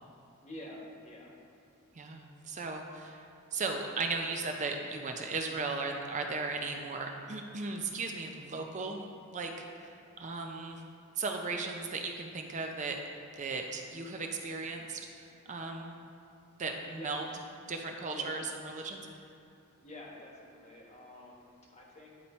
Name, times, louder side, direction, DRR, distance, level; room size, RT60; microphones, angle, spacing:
voice 1, 0.4-1.3 16.9-17.1 17.6-17.7 18.1-18.4 19.8-22.2, left 1 dB, 35° left, -2 dB, 1.3 m, -48 dB
voice 2, 1.9-3.2 3.5-9.0 9.3-10.8 11.2-13.0 13.4-16.0 16.6-17.2 17.7-19.0, right 3 dB, 35° right, 3 dB, 0.5 m, -36 dB
9.7 x 4.2 x 4.3 m, 2.6 s
head